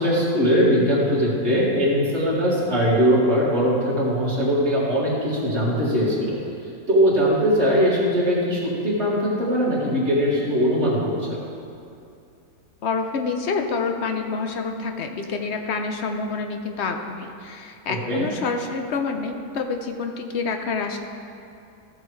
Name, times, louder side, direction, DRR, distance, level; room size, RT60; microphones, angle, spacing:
voice 1, 0.0-6.4 6.9-11.4 17.9-18.3, equal, 45° right, -7 dB, 2.5 m, -21 dB
voice 2, 12.8-21.0, left 4 dB, 60° left, 4 dB, 0.8 m, -27 dB
13.5 x 7.5 x 3.2 m, 2.5 s
omnidirectional pair, 1.6 m